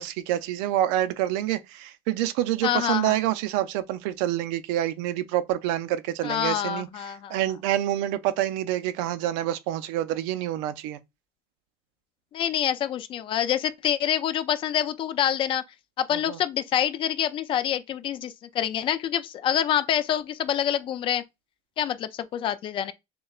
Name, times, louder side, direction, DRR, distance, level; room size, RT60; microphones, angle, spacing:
voice 1, 0.0-11.0 16.1-16.4, right 13 dB, 70° right, 0.6 m, -27 dB
voice 2, 2.6-3.2 6.2-7.4 12.3-15.6 16.0-21.2 21.8-22.9, left 10 dB, 30° left, 0.4 m, -26 dB
6.4 x 2.3 x 2.4 m
cardioid pair, 155°, 18 cm